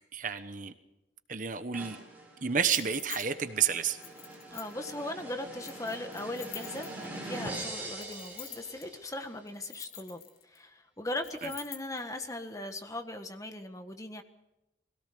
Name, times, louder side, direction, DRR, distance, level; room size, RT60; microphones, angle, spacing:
voice 1, 0.1-0.7 1.3-2.0 2.4-4.0 11.4-11.5, right 7 dB, 45° right, 10 dB, 1.1 m, -30 dB
sound 1, 1.7-9.3, right 1 dB, 10° right, 6.1 m, -43 dB
sound 2, 2.6-3.3 4.0-4.9 5.6-7.2 8.0-8.8 9.5-10.6 11.2-12.0, left 10 dB, 55° left, 2.4 m, -45 dB
voice 2, 4.5-14.2, left 1 dB, 20° left, 6 dB, 1.5 m, -39 dB
22.0 x 17.5 x 6.8 m, 0.90 s
head